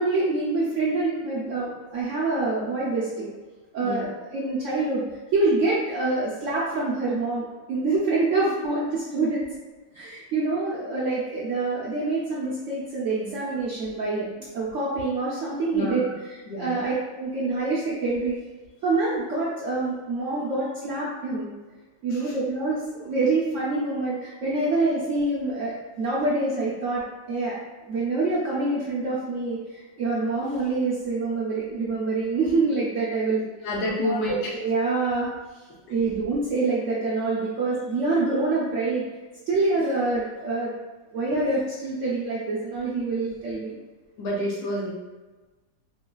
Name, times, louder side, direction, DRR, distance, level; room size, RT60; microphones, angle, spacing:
voice 1, 0.0-3.3 3.7-5.0 5.3-9.5 9.9-18.4 18.8-21.5 22.0-27.0 27.3-27.6 27.9-33.4 34.0-34.2 34.5-35.3 35.9-39.0 39.5-40.7 41.1-43.8, right 3 dB, 80° right, -7 dB, 0.6 m, -26 dB
voice 2, 15.7-16.2 16.5-16.9 22.1-22.3 33.6-34.5 44.2-44.9, left 1 dB, 70° left, -3 dB, 1.1 m, -29 dB
3.1 x 2.7 x 2.2 m, 1.2 s
omnidirectional pair, 1.9 m